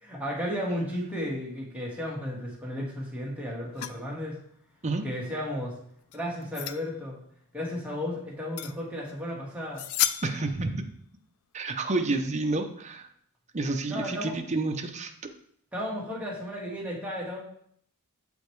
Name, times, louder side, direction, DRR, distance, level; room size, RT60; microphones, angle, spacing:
voice 1, 0.0-4.4 5.0-5.8 6.1-7.2 7.5-9.9 13.9-14.4 15.7-17.4, equal, 5° right, -4 dB, 1.6 m, -34 dB
sound 1, 3.7-4.0 6.1-6.9 8.6-8.7 9.1-9.2 9.8-10.6, left 11 dB, 70° left, 0.4 m, -31 dB
voice 2, 10.2-10.9 11.5-13.1 13.5-15.1, right 2 dB, 30° right, 5 dB, 0.6 m, -29 dB
7.6 x 5.1 x 3.2 m, 0.66 s
head